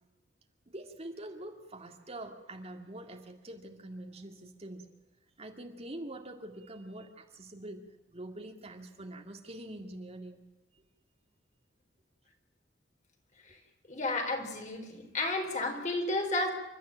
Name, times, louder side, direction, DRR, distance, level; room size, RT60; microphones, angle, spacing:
voice 1, 0.7-4.9 5.4-10.4, right 1 dB, 35° right, 2.1 m, -45 dB
voice 2, 13.9-16.5, left 2 dB, 40° left, 4.2 m, -32 dB
29.0 x 13.0 x 8.8 m
head